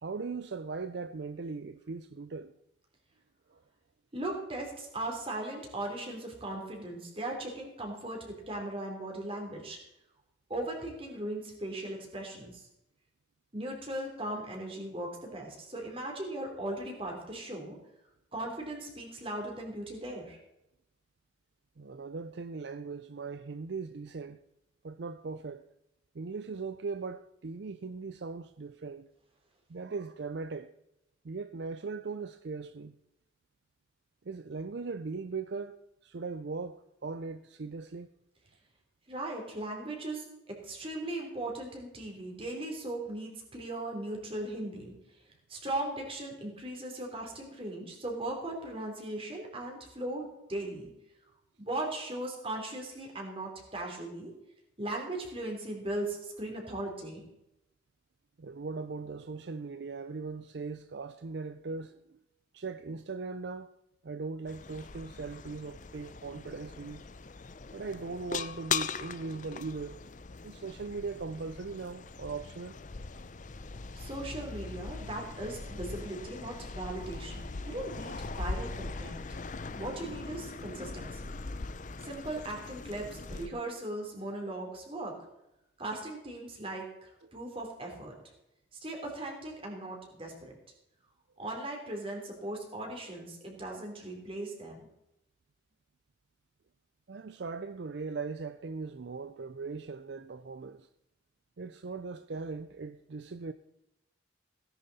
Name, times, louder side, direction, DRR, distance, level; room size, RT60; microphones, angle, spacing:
voice 1, 0.0-2.5 3.5-3.6 21.8-24.4 24.8-25.6 26.1-29.1 29.7-30.7 31.2-33.0 34.2-38.1 58.4-62.2 62.5-63.7 64.0-67.1 67.7-70.0 70.4-72.8 87.2-87.3 97.1-100.9 101.6-103.5, right 4 dB, 60° right, 0.5 m, -39 dB
voice 2, 4.1-9.8 10.5-12.7 13.5-17.8 18.3-20.4 39.1-40.2 40.6-44.9 45.5-50.9 51.6-54.3 54.8-57.2 73.9-79.2 79.7-81.3 82.0-85.2 85.8-88.1 88.8-90.5 91.4-94.9, right 1 dB, 30° right, 3.4 m, -38 dB
sound 1, 64.5-83.5, left 4 dB, 40° left, 0.6 m, -40 dB
17.0 x 10.5 x 4.2 m
head